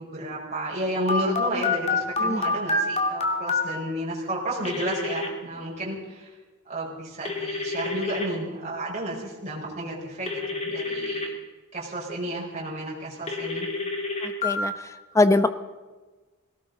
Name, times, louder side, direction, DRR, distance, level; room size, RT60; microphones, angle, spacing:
voice 1, 0.0-6.3 6.6-11.3 11.7-13.7, right 1 dB, 30° right, -5 dB, 4.8 m, -32 dB
Telephone, 1.1-3.6 4.6-5.3 7.3-8.3 10.3-11.3 13.3-14.6, left 3 dB, 30° left, 2.3 m, -27 dB
voice 2, 14.2-14.7 15.1-15.5, left 2 dB, 15° left, 11 dB, 0.7 m, -21 dB
20.5 x 17.5 x 3.9 m, 1.3 s
head